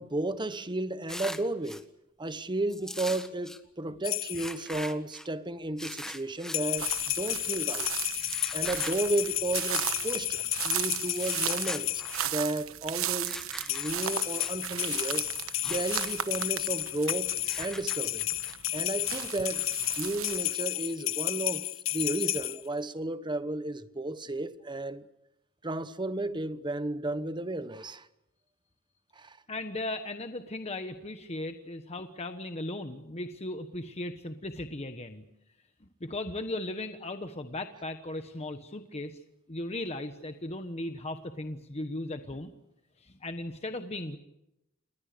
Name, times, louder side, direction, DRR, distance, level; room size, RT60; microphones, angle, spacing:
voice 1, 0.0-1.8 2.2-7.9 8.5-10.4 10.6-13.3 13.7-15.3 15.7-18.3 18.7-19.7 19.9-21.7 21.9-25.0 25.6-28.1 29.2-29.4, right 2 dB, 20° right, 1.0 m, -33 dB
sound 1, 1.1-1.8 2.7-3.6 4.3-5.3 5.8-6.6 8.2-9.0 9.7-9.9 11.0-12.3 13.2-14.5 15.5-16.1 16.4-16.5 17.4-18.5, left 1 dB, 5° left, 1.5 m, -41 dB
sound 2, 4.0-4.6 6.5-12.3 13.6-22.6, left 16 dB, 70° left, 0.8 m, -32 dB
sound 3, 6.8-20.6, right 11 dB, 90° right, 1.2 m, -36 dB
voice 2, 29.5-35.2 36.0-39.2 39.5-42.5 43.0-44.2, left 2 dB, 30° left, 1.3 m, -37 dB
29.5 x 21.0 x 6.8 m
head